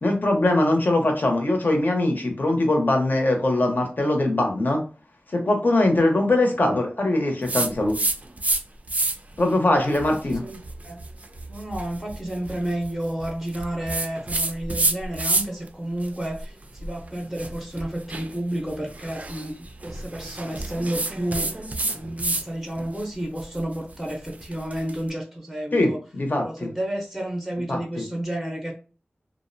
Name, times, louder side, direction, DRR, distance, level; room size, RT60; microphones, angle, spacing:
voice 1, 0.0-4.8 5.3-8.0 9.4-10.4 25.7-26.7 27.7-28.0, left 2 dB, 55° left, 3 dB, 0.7 m, -22 dB
sound 1, 7.5-8.6 8.9-9.4 9.9-15.7 16.0-22.5 22.8-25.0, right 2 dB, 40° right, 0.4 m, -29 dB
voice 2, 9.7-11.0 11.5-21.5 21.9-26.0 26.4-28.7, right 1 dB, ahead, 1 dB, 0.6 m, -31 dB
2.5 x 2.0 x 2.6 m, 0.35 s
wide cardioid pair, 55°, 4 cm